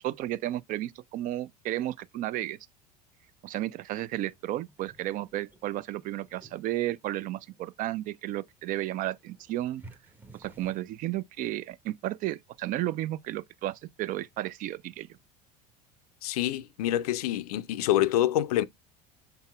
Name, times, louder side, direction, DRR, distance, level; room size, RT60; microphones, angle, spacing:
voice 1, 0.0-2.6 3.4-9.8 10.3-15.1, right 14 dB, 40° right, 0.4 m, -33 dB
sound 1, 4.3-10.8, right 2 dB, 10° right, 0.8 m, -56 dB
voice 2, 16.2-18.6, left 13 dB, 70° left, 0.4 m, -26 dB
5.5 x 4.0 x 2.2 m
figure-of-eight pair, 70°, 20 cm